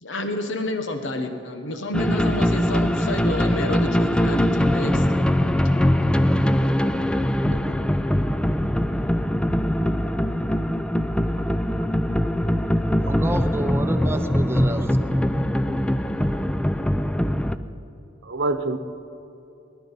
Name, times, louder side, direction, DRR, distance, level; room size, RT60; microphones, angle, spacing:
voice 1, 0.0-5.1, left 1 dB, 90° left, 6 dB, 1.1 m, -29 dB
sound 1, 1.9-17.6, equal, 5° left, 0.4 m, -22 dB
voice 2, 7.5-7.9 18.2-18.8, right 2 dB, 80° right, 10 dB, 0.9 m, -27 dB
voice 3, 13.0-15.0, right 1 dB, 15° right, 7 dB, 0.8 m, -29 dB
18.5 x 11.5 x 5.7 m, 2.8 s
head